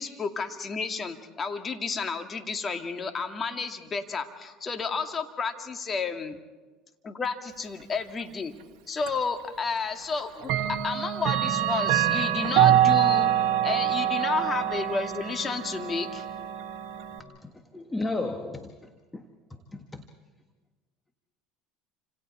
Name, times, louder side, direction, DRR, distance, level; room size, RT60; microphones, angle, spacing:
voice 1, 0.0-6.4 7.0-8.5 8.9-13.3 13.6-16.2, left 5 dB, 30° left, 5 dB, 2.2 m, -31 dB
Clock, 9.1-9.2 10.4-17.2, right 11 dB, 70° right, 1.5 m, -25 dB
voice 2, 17.2-18.7 19.1-19.2 19.7-20.0, left 2 dB, 15° left, 6 dB, 1.7 m, -33 dB
28.5 x 26.5 x 4.4 m, 1.3 s
hypercardioid pair, 85°, 0 cm